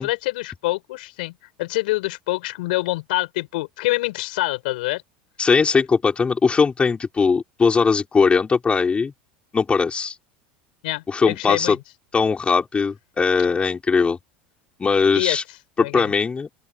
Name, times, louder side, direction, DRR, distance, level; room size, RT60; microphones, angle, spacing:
voice 1, 0.0-5.0 10.8-11.8 15.1-15.4 15.8-16.1, left 20 dB, 75° left, 6.2 m, -26 dB
voice 2, 5.4-9.1 9.5-10.1 11.1-11.8 12.1-14.2 14.8-15.4 15.8-16.5, left 5 dB, 20° left, 5.5 m, -20 dB
open air
hypercardioid pair, 85°, 5 cm